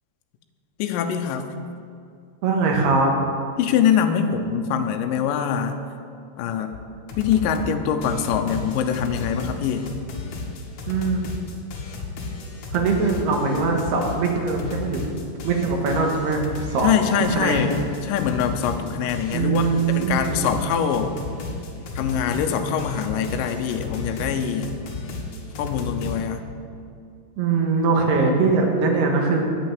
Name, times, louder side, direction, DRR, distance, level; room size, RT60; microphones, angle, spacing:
voice 1, 0.8-1.5 3.6-5.8 6.4-6.8 7.2-9.9 16.8-17.8 18.1-19.6 19.9-21.1 22.0-24.7 25.6-26.4, left 8 dB, 75° left, 6 dB, 2.1 m, -23 dB
voice 2, 2.4-3.1 10.9-11.2 12.7-15.0 15.4-16.4 16.7-16.9 17.3-17.7 19.3-20.6 27.4-29.5, right 4 dB, 85° right, 1 dB, 3.4 m, -21 dB
sound 1, 6.7-6.8 7.1-7.7 8.0-26.2, left 3 dB, 60° left, 2.3 m, -34 dB
9.0 x 8.0 x 7.5 m, 2.4 s
omnidirectional pair, 4.5 m